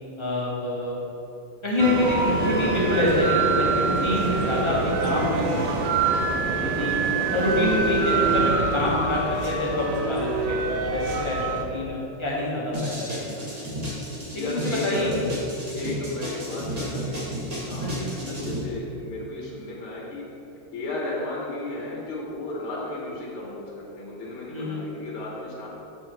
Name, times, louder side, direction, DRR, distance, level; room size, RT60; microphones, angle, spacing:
voice 1, 0.2-1.0 1.6-6.9 7.3-13.7 14.3-15.3 17.8-18.5 24.5-24.8, left 1 dB, 20° left, -6 dB, 0.9 m, -26 dB
sound 1, 1.8-11.6, right 3 dB, 75° right, 1.5 m, -25 dB
sound 2, 12.7-18.6, equal, 25° right, 0.8 m, -32 dB
voice 2, 14.2-15.1 15.7-20.3 20.7-25.7, left 2 dB, 75° left, -4 dB, 1.8 m, -34 dB
6.5 x 5.7 x 4.4 m, 3.0 s
omnidirectional pair, 2.4 m